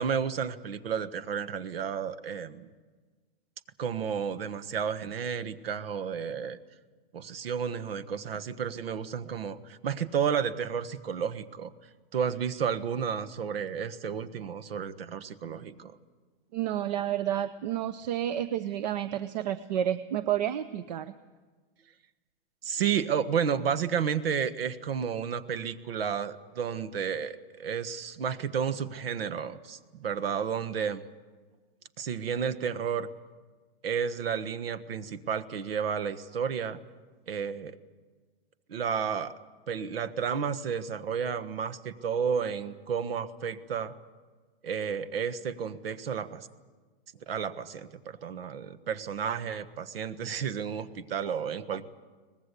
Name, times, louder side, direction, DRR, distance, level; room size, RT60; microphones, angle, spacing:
voice 1, 0.0-2.7 3.8-6.6 7.1-11.7 12.1-16.0 22.6-31.0 32.0-33.1 33.8-36.8 37.3-37.8 38.7-39.3 39.7-43.9 44.6-46.5 47.3-51.8, right 7 dB, 80° right, 13 dB, 1.5 m, -32 dB
voice 2, 16.5-21.1, right 11 dB, 45° right, 13 dB, 0.7 m, -30 dB
24.0 x 20.0 x 8.3 m, 1.4 s
hypercardioid pair, 170°, 29 cm